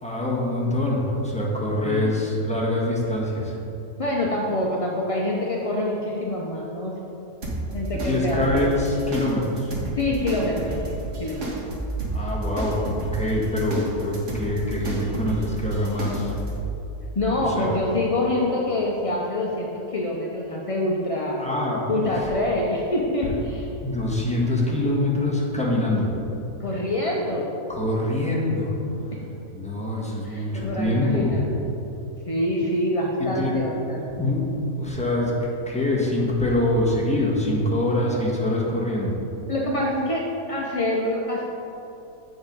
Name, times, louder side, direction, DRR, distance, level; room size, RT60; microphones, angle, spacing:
voice 1, 0.0-3.5 7.9-9.7 12.1-12.8 13.1-16.4 17.2-17.8 21.4-22.3 23.8-26.1 27.7-28.8 29.5-31.3 33.4-33.5 34.1-35.3 35.7-39.1, left 1 dB, 5° left, -5 dB, 1.3 m, -24 dB
voice 2, 4.0-6.9 7.7-8.7 10.0-11.5 17.1-21.4 21.9-23.7 26.6-27.5 30.2-31.4 32.3-34.1 39.5-41.4, left 1 dB, 45° left, -3 dB, 0.4 m, -26 dB
sound 1, 7.4-16.6, right 2 dB, 50° right, 1.5 m, -31 dB
8.2 x 5.4 x 5.3 m, 2.9 s
omnidirectional pair, 1.7 m